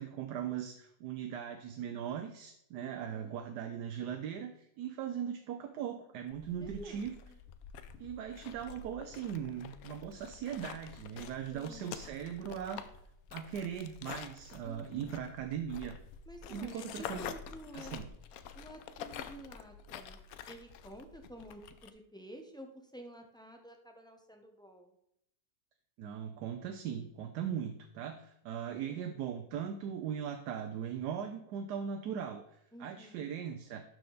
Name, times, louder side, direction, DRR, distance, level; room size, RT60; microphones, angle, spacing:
voice 1, 0.0-7.1 8.0-12.8 13.3-16.0 16.5-17.3 17.7-18.1 26.0-33.8, right 8 dB, 85° right, 6 dB, 1.2 m, -39 dB
voice 2, 2.8-3.3 6.5-7.4 11.5-12.0 14.6-15.2 16.3-18.0 18.5-20.2 20.5-24.9 28.6-29.2 32.7-33.3, equal, 5° left, 3 dB, 0.5 m, -51 dB
sound 1, 6.3-21.9, left 7 dB, 70° left, 1.0 m, -48 dB
11.5 x 4.5 x 3.9 m, 0.76 s
omnidirectional pair, 1.7 m